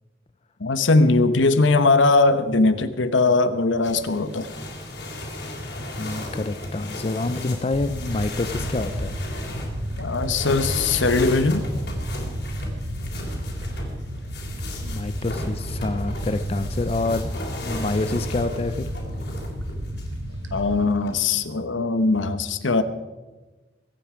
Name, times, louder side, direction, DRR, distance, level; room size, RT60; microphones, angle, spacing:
voice 1, 0.6-4.5 10.0-11.6 20.5-22.8, left 3 dB, 85° left, 11 dB, 1.0 m, -20 dB
sound 1, 3.8-20.2 20.9-21.6, left 1 dB, 60° left, 3.7 m, -35 dB
voice 2, 6.0-9.2 14.8-18.8, left 2 dB, 30° left, 11 dB, 0.5 m, -27 dB
sound 2, 7.7-20.9, equal, 85° right, 1.3 m, -32 dB
22.5 x 9.2 x 5.0 m, 1.2 s
head